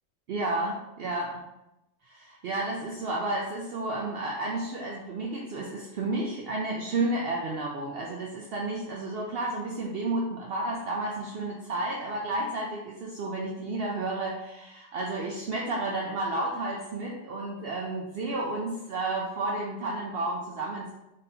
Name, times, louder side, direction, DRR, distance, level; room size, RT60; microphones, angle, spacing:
voice 1, 0.3-1.4 2.1-20.9, right 2 dB, 60° right, -1 dB, 0.7 m, -31 dB
4.0 x 3.6 x 2.7 m, 0.90 s
omnidirectional pair, 1.3 m